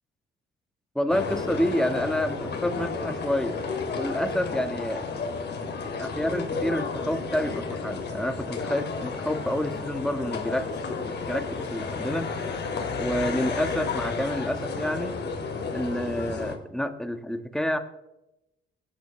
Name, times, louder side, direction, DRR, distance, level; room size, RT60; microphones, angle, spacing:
voice 1, 0.9-3.6 3.9-5.0 6.0-12.3 13.0-15.2 15.7-17.8, equal, 5° left, 8 dB, 1.4 m, -29 dB
sound 1, 1.1-16.6, left 4 dB, 60° left, 2.5 m, -32 dB
18.5 x 11.0 x 3.3 m, 0.91 s
cardioid pair, 90°, 20 cm